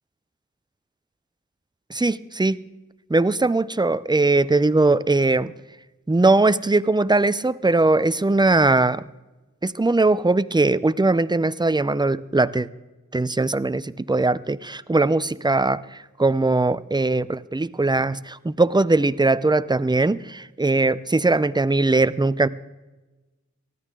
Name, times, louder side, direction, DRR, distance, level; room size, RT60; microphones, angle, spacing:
voice 1, 1.9-2.6 3.1-5.5 6.1-9.0 9.6-12.7 13.1-22.5, right 2 dB, 15° right, 16 dB, 0.6 m, -20 dB
19.0 x 13.0 x 3.8 m, 1.1 s
cardioid pair, 45°, 30 cm